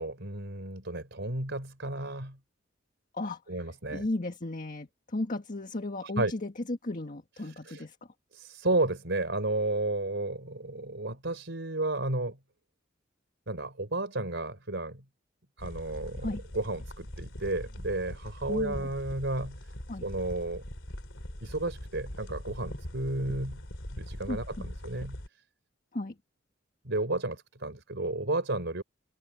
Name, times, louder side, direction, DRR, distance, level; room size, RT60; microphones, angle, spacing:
voice 1, 0.0-2.4 3.5-4.1 6.0-6.3 7.4-7.8 8.3-12.4 13.5-15.0 15.6-19.6 20.0-20.6 21.4-23.6 23.9-25.2 26.8-28.8, right 2 dB, 65° right, 4.4 m, -32 dB
voice 2, 3.9-7.9 16.2-16.4 18.5-18.9 19.9-20.0 24.3-24.7 25.9-26.1, left 2 dB, 45° left, 1.7 m, -35 dB
sound 1, 15.6-25.3, left 1 dB, 75° left, 3.4 m, -41 dB
open air
head